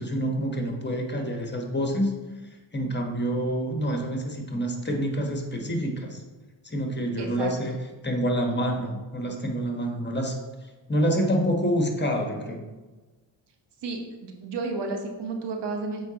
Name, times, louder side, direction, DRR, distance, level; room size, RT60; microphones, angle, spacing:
voice 1, 0.0-2.1 2.7-6.2 6.6-7.7 8.0-10.3 10.9-12.6, equal, 20° left, 2 dB, 1.2 m, -27 dB
voice 2, 7.2-7.5 13.8-16.1, right 3 dB, 60° right, 3 dB, 1.2 m, -32 dB
7.6 x 4.9 x 2.9 m, 1.2 s
cardioid pair, 75°, 48 cm